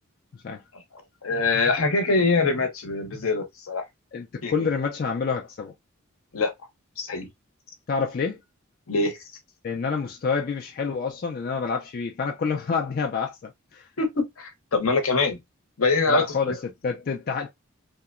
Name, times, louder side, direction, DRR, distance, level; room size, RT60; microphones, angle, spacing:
voice 1, 1.2-3.8 4.4-4.5 6.3-6.5 7.0-7.3 8.9-9.2 14.0-15.4 15.8-16.2, left 3 dB, 75° left, 0.8 m, -23 dB
voice 2, 4.1-5.7 7.9-8.4 9.6-13.9 16.1-17.5, left 5 dB, 45° left, 0.3 m, -28 dB
2.8 x 2.1 x 2.3 m
head